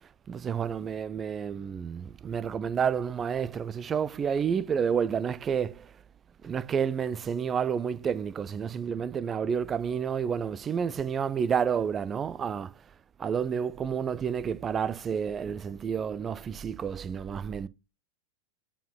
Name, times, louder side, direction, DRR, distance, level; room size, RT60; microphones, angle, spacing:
voice 1, 0.3-5.9 6.4-12.7 13.2-17.7, right 7 dB, 20° right, 0.5 m, -30 dB
7.2 x 4.6 x 5.4 m
figure-of-eight pair, 90°, 0 cm